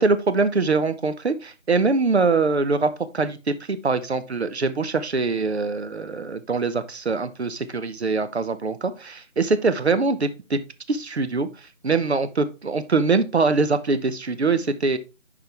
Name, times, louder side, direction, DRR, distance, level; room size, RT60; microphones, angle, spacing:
voice 1, 0.0-10.6 10.9-15.0, right 4 dB, 55° right, 11 dB, 0.9 m, -23 dB
10.5 x 3.7 x 3.3 m, 0.30 s
figure-of-eight pair, 175°, 38 cm